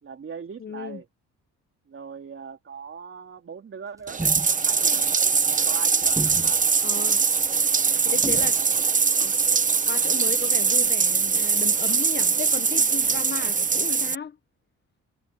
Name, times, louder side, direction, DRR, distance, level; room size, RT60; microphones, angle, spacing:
voice 1, 0.0-1.1 1.9-5.1 5.5-6.6 7.7-8.7 9.1-9.3, right 6 dB, 45° right, 3.2 m, -40 dB
voice 2, 0.6-1.0 6.8-7.2 8.0-8.6 9.9-14.4, left 6 dB, 35° left, 1.0 m, -35 dB
sound 1, 4.0-4.5 6.0-6.6 8.2-8.6, right 2 dB, 10° right, 1.2 m, -32 dB
Bathtub (filling or washing), 4.1-14.1, right 5 dB, 25° right, 0.9 m, -22 dB
cardioid pair, 90°, 30 cm